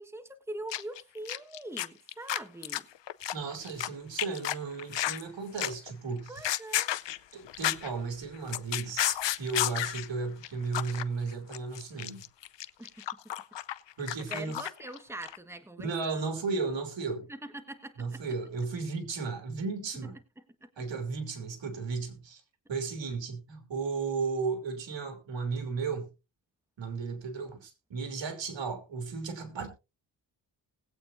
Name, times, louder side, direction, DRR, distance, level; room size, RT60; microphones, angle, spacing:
voice 1, 0.0-2.9 6.3-6.9 12.8-13.0 14.2-16.2 17.3-18.2 20.4-20.7, right 1 dB, 5° right, 1.5 m, -43 dB
sound 1, 0.7-1.0 1.3-3.9 4.2-5.2 5.6-5.9 6.3-7.9 8.2-10.1 10.4-10.5 10.7-11.0 11.3-15.0 15.2-15.4, left 13 dB, 75° left, 0.7 m, -32 dB
voice 2, 3.3-6.3 7.3-12.2 14.0-14.6 15.8-17.3 18.0-20.1 20.8-22.4 22.7-26.1 26.8-29.7, right 4 dB, 80° right, 2.9 m, -34 dB
20.0 x 8.5 x 2.6 m
cardioid pair, 75°, 44 cm